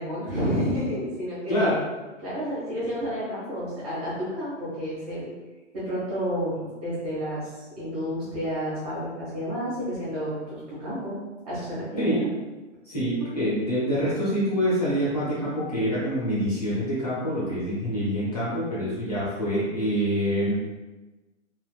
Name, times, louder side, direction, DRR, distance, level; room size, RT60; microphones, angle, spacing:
voice 1, 0.0-1.8 2.2-5.3 5.7-11.2 11.4-12.3, equal, 30° right, -9 dB, 1.3 m, -30 dB
voice 2, 1.5-1.8 12.0-12.2 12.8-20.5, equal, 30° left, -9 dB, 0.8 m, -26 dB
3.4 x 2.5 x 2.3 m, 1.2 s
hypercardioid pair, 180°, 37 cm